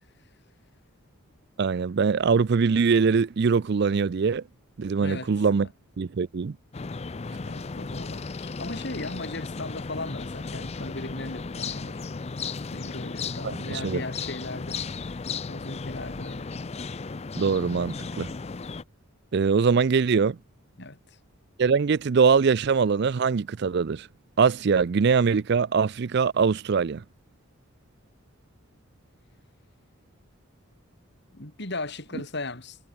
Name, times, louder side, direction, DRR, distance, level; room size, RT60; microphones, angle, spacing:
voice 1, 1.6-4.4 4.8-5.7 6.0-6.6 13.4-14.0 17.4-18.3 19.3-20.4 21.6-24.1 24.4-27.0, right 5 dB, 50° right, 0.4 m, -22 dB
voice 2, 5.0-5.3 5.6-5.7 7.4-12.0 12.7-15.2 15.5-16.5 20.8-21.0 31.3-32.8, left 2 dB, 55° left, 4.1 m, -37 dB
sound 1, 6.7-18.8, left 4 dB, 30° left, 0.5 m, -35 dB
head